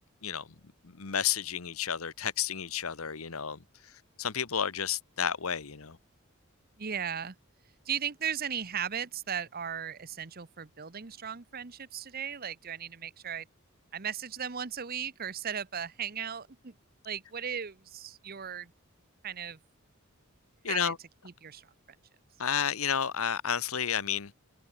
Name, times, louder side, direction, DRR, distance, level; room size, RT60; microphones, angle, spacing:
voice 1, 0.8-3.6 4.2-6.0 20.6-21.0 22.4-24.3, left 8 dB, 80° left, 1.1 m, -31 dB
voice 2, 6.8-7.4 7.9-13.5 13.9-16.7 17.0-18.7 19.2-19.6 20.7-20.9 21.2-21.7, right 8 dB, 45° right, 0.9 m, -36 dB
head